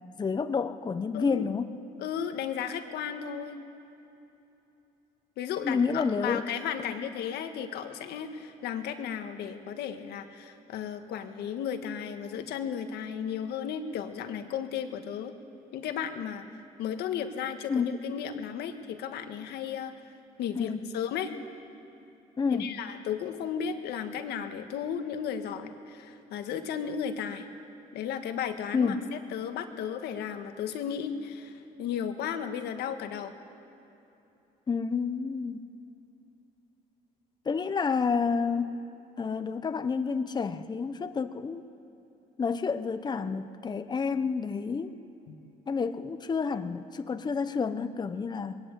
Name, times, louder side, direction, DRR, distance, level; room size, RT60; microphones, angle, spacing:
voice 1, 0.0-1.7 5.6-6.4 17.7-17.9 20.6-20.8 22.4-22.8 28.7-29.1 34.7-35.6 37.4-38.8 39.2-41.6 42.4-44.9 45.7-48.6, left 5 dB, 25° left, 10 dB, 0.9 m, -29 dB
voice 2, 2.0-3.6 5.4-15.3 15.7-16.4 16.8-19.9 20.4-21.3 22.5-27.5 27.9-33.3 45.3-45.4, left 8 dB, 75° left, 7 dB, 1.6 m, -34 dB
21.0 x 19.0 x 8.2 m, 2.9 s
cardioid pair, 110°, 17 cm